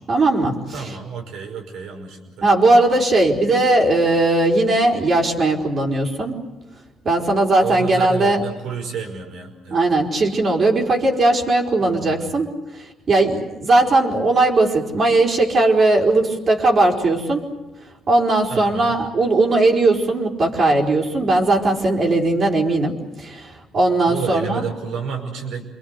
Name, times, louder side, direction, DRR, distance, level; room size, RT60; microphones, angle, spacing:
voice 1, 0.1-1.0 2.4-6.4 7.0-8.4 9.7-12.5 12.8-17.4 18.1-24.6, right 2 dB, 50° right, -1 dB, 4.7 m, -18 dB
voice 2, 0.7-2.5 7.6-9.8 11.8-12.3 18.5-19.0 24.1-25.7, right 6 dB, 80° right, 4 dB, 5.3 m, -30 dB
27.5 x 23.0 x 8.2 m, 1.0 s
cardioid pair, 90°, 0 cm